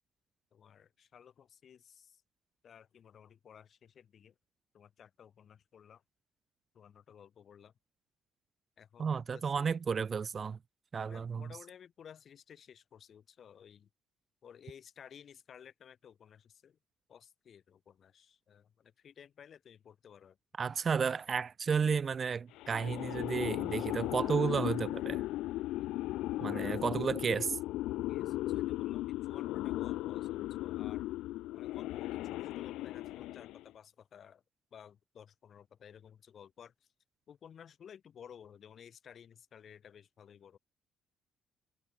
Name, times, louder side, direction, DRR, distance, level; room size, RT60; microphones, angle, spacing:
voice 1, 0.5-2.2 2.6-4.3 4.7-6.0 6.7-7.7 8.8-9.8 11.0-13.9 14.4-16.8 17.1-20.4 26.4-26.8 28.1-31.1 31.5-34.4 34.7-36.7 37.3-40.6, left 8 dB, 55° left, 2.9 m, -55 dB
voice 2, 9.0-10.6 10.9-11.5 20.6-25.2 26.4-27.6, right 6 dB, 45° right, 0.4 m, -32 dB
sound 1, 22.6-33.7, left 16 dB, 70° left, 1.0 m, -36 dB
hypercardioid pair, 50°, 0 cm